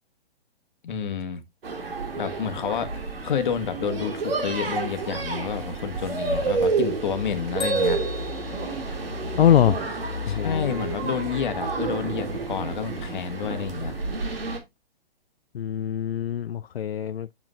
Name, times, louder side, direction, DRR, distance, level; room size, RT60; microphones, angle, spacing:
voice 1, 0.8-1.4 2.2-8.0 10.3-13.9, left 7 dB, 55° left, 1.4 m, -29 dB
sound 1, 1.6-14.6, right 3 dB, 70° right, 2.4 m, -29 dB
Bell, 7.6-9.6, equal, 15° left, 2.2 m, -37 dB
voice 2, 9.4-9.8 10.3-10.8 15.5-17.3, left 10 dB, 85° left, 0.4 m, -22 dB
7.8 x 7.1 x 2.4 m
hypercardioid pair, 135°, 30 cm